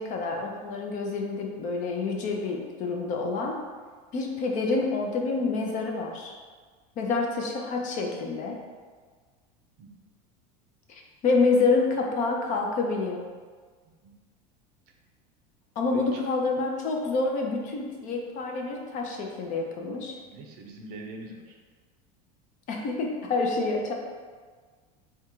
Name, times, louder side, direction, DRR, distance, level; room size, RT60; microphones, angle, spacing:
voice 1, 0.0-3.6 4.1-6.3 7.0-8.6 10.9-13.2 15.8-20.2 22.7-23.9, left 3 dB, 40° left, 1 dB, 0.6 m, -27 dB
voice 2, 15.9-16.2 20.3-21.6, right 2 dB, 50° right, 2 dB, 0.6 m, -42 dB
3.6 x 2.3 x 4.4 m, 1.5 s
supercardioid pair, 145°, 21 cm